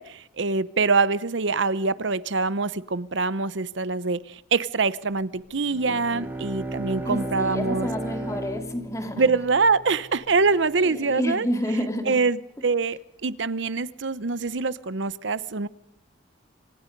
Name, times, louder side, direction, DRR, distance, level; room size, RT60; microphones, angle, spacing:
voice 1, 0.0-7.9 9.2-11.5 12.0-15.7, right 4 dB, 70° right, 16 dB, 0.8 m, -24 dB
Bowed string instrument, 5.6-10.2, right 2 dB, 10° right, 3.8 m, -35 dB
voice 2, 7.0-9.3 10.8-12.2, equal, 15° left, 5 dB, 2.9 m, -29 dB
26.5 x 26.5 x 5.3 m, 0.78 s
head